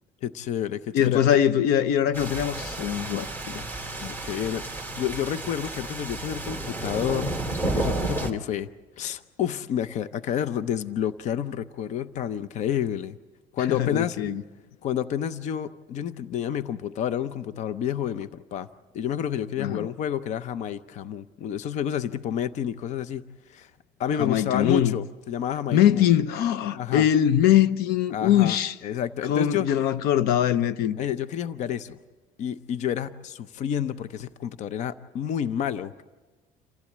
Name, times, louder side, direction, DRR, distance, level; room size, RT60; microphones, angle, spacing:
voice 1, 0.2-1.3 4.0-7.3 7.6-8.7 9.0-13.2 13.5-14.2 14.8-18.7 18.9-23.2 23.5-23.7 24.0-26.0 26.7-27.1 28.1-29.7 31.0-32.0 32.4-36.0, left 9 dB, 50° left, 0.6 m, -29 dB
voice 2, 0.9-3.6 13.7-14.4 19.6-19.9 24.2-24.9 25.7-28.7 29.3-31.0, left 10 dB, 85° left, 0.8 m, -22 dB
sound 1, 2.1-8.3, right 2 dB, 15° left, 2.4 m, -31 dB
27.5 x 15.5 x 8.5 m
cardioid pair, 165°, 16 cm